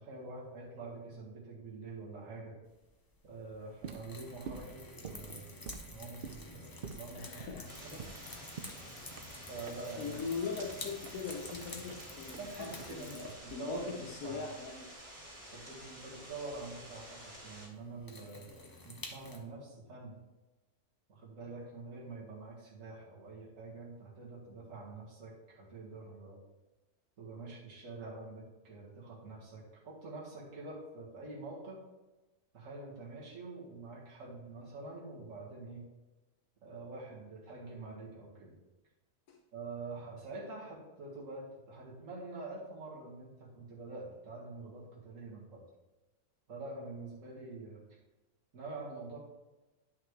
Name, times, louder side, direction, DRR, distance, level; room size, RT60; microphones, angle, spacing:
voice 1, 0.0-2.5 3.2-5.4 5.7-7.4 7.8-8.1 9.4-10.3 12.3-14.5 15.5-20.2 21.1-26.4 27.2-31.8 32.5-35.8 36.6-38.5 39.5-45.6 46.5-48.0 48.5-49.2, right 3 dB, 55° right, -4 dB, 2.1 m, -46 dB
sound 1, 2.8-19.4, left 2 dB, 25° left, 0.4 m, -50 dB
sound 2, 3.7-13.9, right 6 dB, 75° right, 0.5 m, -49 dB
voice 2, 7.2-7.7 10.0-14.9, left 5 dB, 70° left, -1 dB, 1.2 m, -41 dB
sound 3, 7.7-17.7, right 1 dB, 40° right, 3.0 m, -50 dB
10.0 x 5.8 x 3.2 m, 1.1 s
omnidirectional pair, 1.6 m